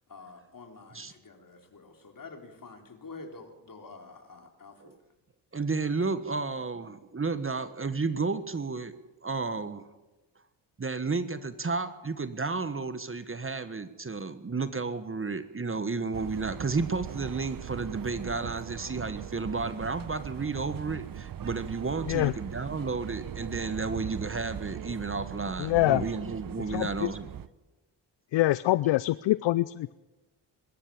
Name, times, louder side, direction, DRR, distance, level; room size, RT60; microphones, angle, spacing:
voice 1, 0.1-4.9, left 3 dB, 40° left, 4 dB, 4.0 m, -48 dB
voice 2, 5.5-8.9 9.2-9.9 10.8-27.3, right 4 dB, 25° right, 12 dB, 1.4 m, -32 dB
sound 1, 16.1-27.5, right 10 dB, 45° right, 0.9 m, -40 dB
voice 3, 25.6-26.0 26.7-27.1 28.3-29.9, left 17 dB, 65° left, 18 dB, 0.6 m, -25 dB
22.5 x 13.5 x 8.8 m, 1.1 s
supercardioid pair, 50°, 48 cm